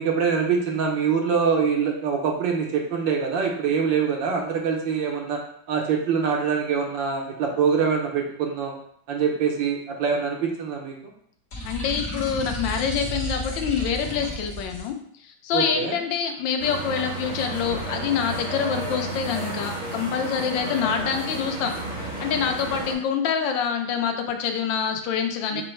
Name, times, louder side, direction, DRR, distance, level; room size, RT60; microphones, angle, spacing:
voice 1, 0.0-5.4 5.7-8.7 9.1-10.9 15.5-16.0 25.5-25.6, right 6 dB, 85° right, 0 dB, 1.5 m, -24 dB
sound 1, 11.5-14.9, equal, 50° left, 1.3 m, -32 dB
voice 2, 11.6-15.0 15.2-21.8 22.2-25.6, left 7 dB, 90° left, 5 dB, 1.4 m, -26 dB
sound 2, 16.6-22.9, right 1 dB, 40° right, 1.5 m, -32 dB
5.4 x 2.1 x 4.4 m, 0.67 s
omnidirectional pair, 2.0 m